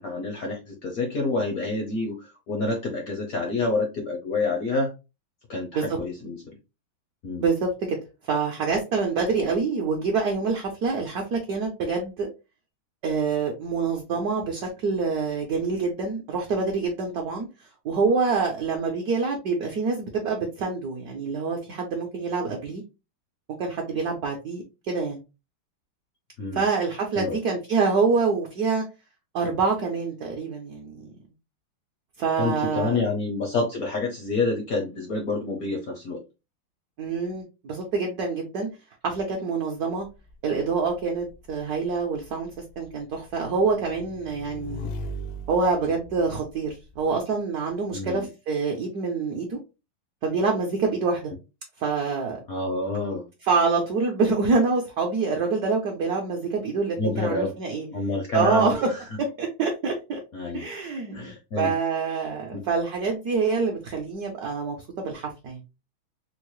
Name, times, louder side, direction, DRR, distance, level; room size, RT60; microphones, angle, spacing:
voice 1, 0.0-4.9 5.5-6.6 7.2-7.4 26.4-26.6 27.1-27.4 32.4-36.2 47.9-48.3 52.5-53.3 57.0-57.5 57.9-58.7 60.3-61.7 62.5-62.7, left 3 dB, 65° left, 2 dB, 0.9 m, -28 dB
voice 2, 7.4-8.0 8.3-12.3 13.0-17.5 17.8-22.8 23.6-25.2 26.5-28.8 29.3-31.1 32.2-33.0 37.0-38.7 39.0-40.1 40.4-42.5 42.8-44.9 45.5-49.6 50.2-51.3 51.8-52.4 53.4-57.9 58.3-58.9 59.2-60.2 60.5-65.6, right 4 dB, 65° right, 1 dB, 1.0 m, -26 dB
Motorcycle / Engine, 40.0-47.1, equal, 80° left, 1.5 m, -40 dB
4.4 x 2.0 x 3.0 m, 0.27 s
omnidirectional pair, 2.3 m